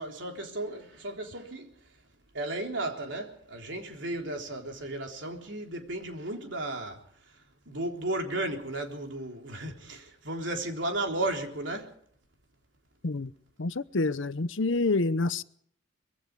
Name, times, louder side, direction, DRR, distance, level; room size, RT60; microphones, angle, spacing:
voice 1, 0.0-1.9 2.3-11.9, right 2 dB, 65° right, 3.6 m, -34 dB
voice 2, 13.6-15.4, left 3 dB, 75° left, 0.8 m, -27 dB
24.5 x 22.5 x 4.8 m
head